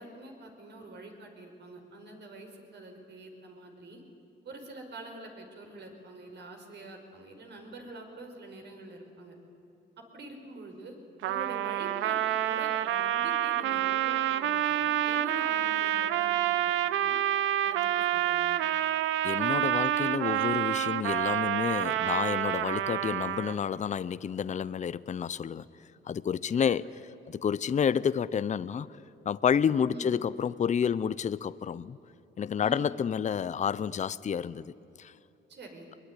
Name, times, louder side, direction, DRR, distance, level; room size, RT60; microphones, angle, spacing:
voice 1, 0.0-4.0 4.4-9.4 10.1-10.9 11.3-16.6 16.9-17.2 17.6-17.8 18.1-18.6 26.5-26.7 29.9-30.2 32.6-32.9 35.5-35.9, right 2 dB, 60° right, 5.2 m, -46 dB
Trumpet, 11.2-23.7, right 12 dB, 90° right, 0.9 m, -28 dB
voice 2, 19.2-25.6 26.1-26.8 27.3-28.9 29.3-32.0 32.4-34.7 35.0-35.1, left 7 dB, 35° left, 0.6 m, -29 dB
22.0 x 22.0 x 9.8 m
cardioid pair, 90°, 20 cm